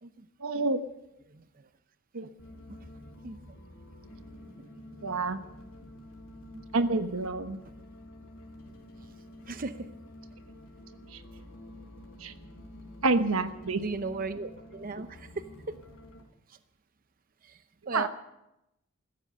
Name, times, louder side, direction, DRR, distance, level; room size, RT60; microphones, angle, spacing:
voice 1, 0.4-0.8 2.1-2.3 5.0-5.4 6.7-7.6 11.1-11.2 12.2-12.3 13.0-13.8 17.9-18.1, right 3 dB, 90° right, 10 dB, 1.1 m, -28 dB
voice 2, 1.3-1.7 2.7-2.8 3.2-3.4 6.5-7.1 9.5-9.9 13.8-15.7 16.5-16.6 17.4-18.1, right 3 dB, 40° right, 11 dB, 0.7 m, -38 dB
sound 1, 2.4-16.2, left 1 dB, 80° left, 4.6 m, -49 dB
15.5 x 13.5 x 6.7 m, 0.88 s
head